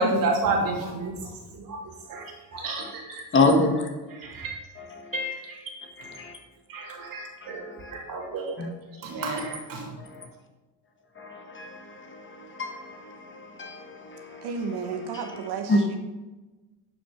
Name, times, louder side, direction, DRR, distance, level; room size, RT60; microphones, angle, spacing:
voice 1, 0.0-2.2 2.5-3.2 4.1-4.6 5.4-5.6 6.7-8.6 9.0-9.9, right 2 dB, 60° right, -1 dB, 2.8 m, -30 dB
voice 2, 3.3-3.9 4.8-5.3 6.0-6.4 7.4-7.9 8.6-8.7 10.0-10.3 11.2-14.5 15.0-15.8, left 2 dB, 30° left, 4 dB, 1.4 m, -28 dB
voice 3, 14.4-16.0, right 5 dB, 80° right, 4 dB, 1.2 m, -32 dB
11.0 x 6.0 x 5.8 m, 1.2 s
cardioid pair, 135°, 39 cm